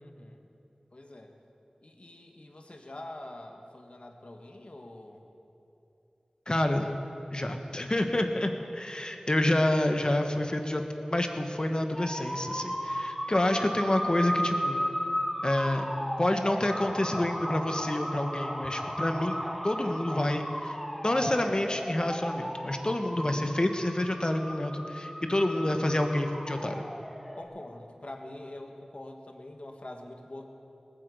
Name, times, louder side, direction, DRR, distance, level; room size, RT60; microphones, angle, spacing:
voice 1, 0.0-0.4 0.9-1.3 1.8-5.2 13.6-13.9 27.4-30.4, left 1 dB, 55° left, 3 dB, 1.6 m, -45 dB
voice 2, 6.5-7.0 7.3-10.8 11.1-14.9 15.4-15.8 16.2-20.8 21.0-26.8, left 1 dB, 35° left, 5 dB, 1.3 m, -28 dB
sound 1, 12.0-27.4, equal, ahead, 1.7 m, -35 dB
19.0 x 8.0 x 8.2 m, 2.9 s
wide cardioid pair, 45°, 2 cm